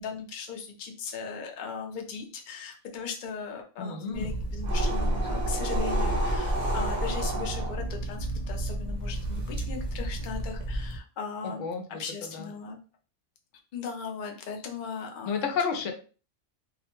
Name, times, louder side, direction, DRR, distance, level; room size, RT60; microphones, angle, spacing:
voice 1, 0.0-12.8 13.7-15.5, left 5 dB, 55° left, 2 dB, 0.6 m, -38 dB
voice 2, 3.8-4.3 11.4-12.5 15.3-15.9, left 5 dB, 85° left, 5 dB, 0.9 m, -32 dB
sound 1, 4.1-11.0, right 1 dB, 45° right, 0.7 m, -29 dB
2.4 x 2.1 x 2.9 m, 0.37 s
omnidirectional pair, 1.2 m